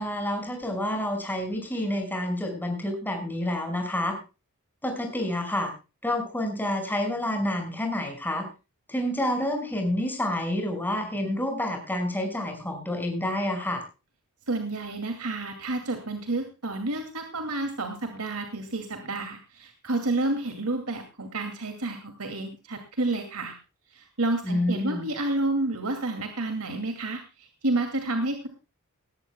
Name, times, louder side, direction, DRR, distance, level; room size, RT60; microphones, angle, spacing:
voice 1, 0.0-4.1 4.8-5.7 6.0-8.5 8.9-13.8 24.4-25.1, left 1 dB, 10° left, 3 dB, 5.7 m, -28 dB
voice 2, 14.5-23.5 23.9-28.5, right 2 dB, 75° right, 5 dB, 2.4 m, -30 dB
19.0 x 15.5 x 2.2 m, 0.31 s
head